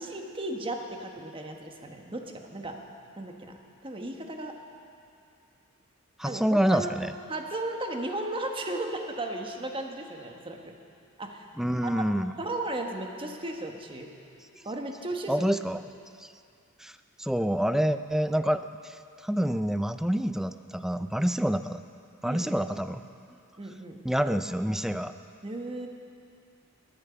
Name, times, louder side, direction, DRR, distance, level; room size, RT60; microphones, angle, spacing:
voice 1, 0.0-2.8 3.2-4.5 6.2-6.9 7.3-10.7 11.2-11.5 11.8-12.0 12.4-14.1 14.6-15.5 22.2-22.6 23.6-24.0 25.4-25.9, right 2 dB, 25° right, 3 dB, 1.2 m, -35 dB
voice 2, 6.2-7.1 11.6-12.3 15.3-15.8 16.2-16.3 16.8-21.8 22.2-23.0 24.0-25.1, equal, ahead, 10 dB, 0.3 m, -27 dB
20.5 x 8.9 x 6.9 m, 2.4 s
head